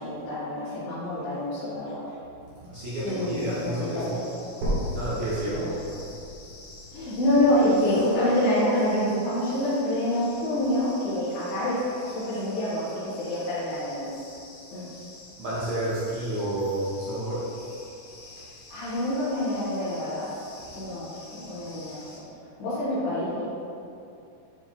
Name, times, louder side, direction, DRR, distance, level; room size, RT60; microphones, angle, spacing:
voice 1, 0.0-2.0 3.0-4.3 5.6-5.7 6.9-14.1 14.7-14.9 18.7-20.3 20.7-22.2 22.6-23.4, left 1 dB, 85° left, -13 dB, 3.9 m, -27 dB
voice 2, 2.6-4.0 4.9-5.9 15.4-17.5, right 1 dB, 70° right, -9 dB, 1.8 m, -30 dB
sound 1, 2.7-22.2, left 2 dB, 65° left, 1.7 m, -48 dB
sound 2, 4.6-8.6 9.2-9.3 9.8-9.9 10.3-10.4 11.2-11.3, equal, 85° right, 3.9 m, -34 dB
10.0 x 4.7 x 2.8 m, 2.7 s
omnidirectional pair, 4.7 m